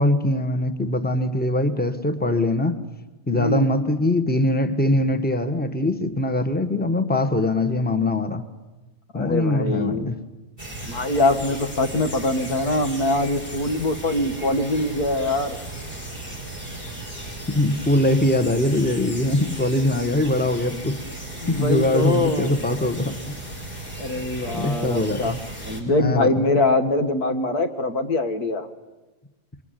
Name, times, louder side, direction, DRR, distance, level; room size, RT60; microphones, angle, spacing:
voice 1, 0.0-2.8 3.3-8.4 9.1-10.2 17.5-21.0 21.5-23.1 24.5-25.4 26.0-26.3, left 1 dB, 5° left, 9 dB, 1.2 m, -22 dB
voice 2, 3.3-3.8 9.1-10.1 10.8-15.6 21.4-22.6 24.0-25.3 25.6-28.7, left 2 dB, 90° left, 7 dB, 2.2 m, -23 dB
sound 1, 10.6-25.8, right 1 dB, 35° left, 6.2 m, -36 dB
27.5 x 23.0 x 9.2 m, 1.2 s
omnidirectional pair, 1.6 m